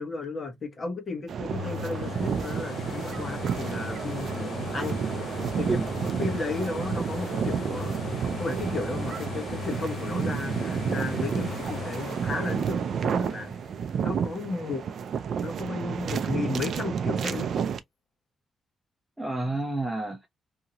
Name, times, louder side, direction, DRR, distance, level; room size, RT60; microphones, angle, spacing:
voice 1, 0.0-5.8 6.2-8.0 8.4-13.5 14.0-14.9 15.4-17.5, left 3 dB, 30° left, 1.0 m, -34 dB
sound 1, 1.3-17.8, right 7 dB, 55° right, 0.4 m, -31 dB
sound 2, 1.5-15.2 15.7-15.8, left 8 dB, 50° left, 0.4 m, -39 dB
voice 2, 4.0-4.6 5.7-5.9 19.2-20.3, right 2 dB, 10° right, 0.6 m, -31 dB
2.8 x 2.5 x 2.8 m
wide cardioid pair, 160°, 0 cm